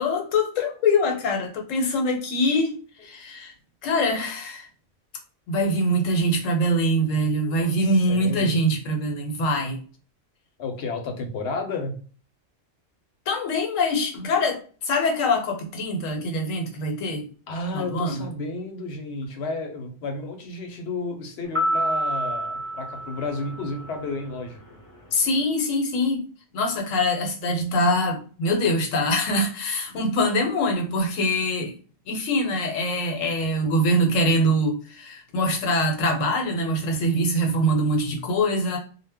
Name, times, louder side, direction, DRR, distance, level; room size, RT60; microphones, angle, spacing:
voice 1, 0.0-3.5 3.8-4.7 5.5-9.8 13.3-17.3 17.7-18.2 25.1-26.2 26.5-31.7 32.1-38.8, left 1 dB, 85° left, 3 dB, 1.0 m, -24 dB
voice 2, 7.8-8.6 10.6-12.0 17.5-24.8, left 3 dB, 65° left, 5 dB, 0.8 m, -32 dB
sound 1, 21.5-24.1, equal, 30° left, 0.4 m, -28 dB
2.1 x 2.1 x 3.4 m, 0.40 s
omnidirectional pair, 1.3 m